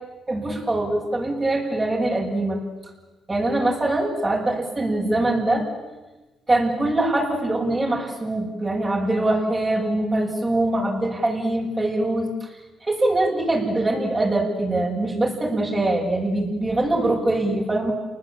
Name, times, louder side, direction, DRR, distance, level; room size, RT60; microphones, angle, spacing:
voice 1, 0.3-2.6 3.3-5.7 6.5-12.5 12.8-17.9, right 2 dB, 25° right, -2 dB, 7.0 m, -23 dB
28.5 x 20.5 x 9.0 m, 1.1 s
cardioid pair, 90°, 0 cm